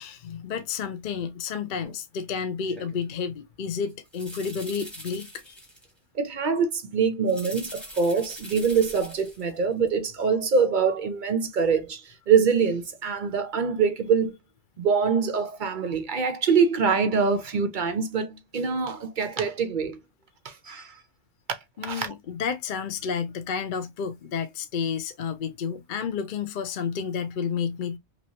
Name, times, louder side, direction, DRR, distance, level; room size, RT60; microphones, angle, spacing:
voice 1, 0.0-5.6 21.8-28.0, left 6 dB, 55° left, 0.6 m, -31 dB
sound 1, 1.8-2.0 2.7-3.0 3.9-5.9 7.3-9.6 9.9-10.0, equal, ahead, 1.3 m, -43 dB
voice 2, 6.2-14.4 14.8-20.0 20.4-20.9 21.8-22.1, right 5 dB, 55° right, 0.6 m, -24 dB
3.0 x 3.0 x 2.6 m
omnidirectional pair, 1.3 m